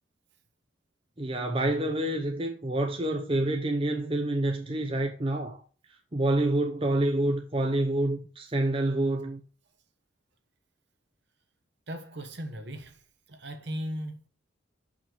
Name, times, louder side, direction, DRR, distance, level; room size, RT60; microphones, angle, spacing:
voice 1, 1.2-5.6 6.1-9.4, right 1 dB, 30° right, 0.7 m, -27 dB
voice 2, 11.9-14.3, equal, 60° right, 1.3 m, -38 dB
6.9 x 5.7 x 4.6 m
head